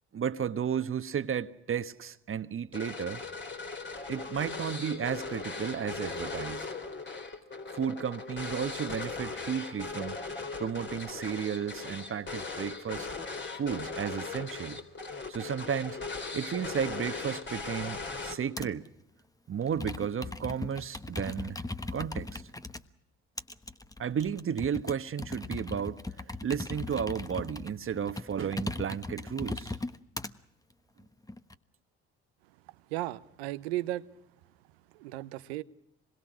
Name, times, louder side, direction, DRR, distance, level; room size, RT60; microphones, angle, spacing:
voice 1, 0.1-3.2 4.1-6.7 7.7-10.2 10.6-13.1 13.6-14.8 15.3-16.0 16.3-18.8 19.5-21.6 21.9-22.4 24.0-26.0 26.4-29.8, right 8 dB, 45° right, 1.2 m, -33 dB
sound 1, 2.7-18.7, left 4 dB, 35° left, 3.7 m, -38 dB
Computer keyboard, 18.6-18.9 19.6-22.8 23.4-30.3 31.0-31.5, left 2 dB, 10° left, 1.2 m, -38 dB
voice 2, 32.9-34.0 34.9-35.6, right 16 dB, 90° right, 0.8 m, -35 dB
26.0 x 21.5 x 6.2 m
hypercardioid pair, 55°, 30 cm